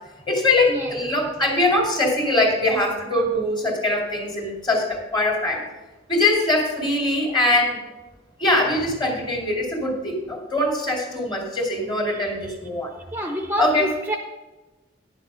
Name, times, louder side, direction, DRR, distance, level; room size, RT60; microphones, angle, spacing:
voice 1, 0.3-5.6 6.1-7.8 8.4-12.9 13.6-13.9, left 2 dB, 25° left, 0 dB, 2.6 m, -22 dB
voice 2, 12.1-12.6 13.1-14.2, equal, 15° right, 2 dB, 0.8 m, -29 dB
10.5 x 7.0 x 5.6 m, 1.1 s
head